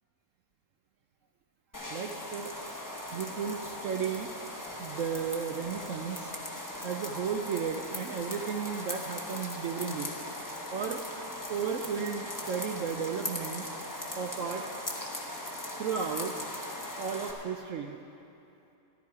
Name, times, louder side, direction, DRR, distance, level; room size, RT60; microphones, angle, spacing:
sound 1, 1.7-17.3, left 1 dB, 15° left, 1.0 m, -39 dB
voice 1, 1.9-2.5 3.1-4.3 4.8-6.3 6.8-10.1 10.7-11.0 11.5-13.7 14.1-14.7 15.8-16.3 17.0-18.0, right 7 dB, 65° right, 3 dB, 0.9 m, -34 dB
13.5 x 11.5 x 4.7 m, 2.7 s
omnidirectional pair, 1.6 m